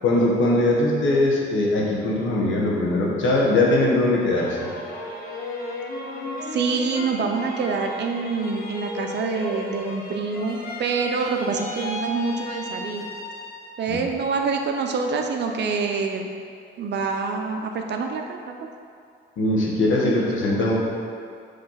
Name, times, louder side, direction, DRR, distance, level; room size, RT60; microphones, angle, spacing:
voice 1, 0.0-4.7 13.9-14.0 19.4-20.7, left 2 dB, 75° left, -3 dB, 1.4 m, -21 dB
sound 1, 4.1-13.9 14.3-15.0, left 1 dB, 50° left, 1.1 m, -35 dB
voice 2, 6.5-13.1 13.8-16.3 16.8-18.7 20.0-20.1, right 4 dB, 60° right, 3 dB, 0.7 m, -26 dB
6.7 x 3.3 x 5.7 m, 2.3 s
cardioid pair, 90°, 20 cm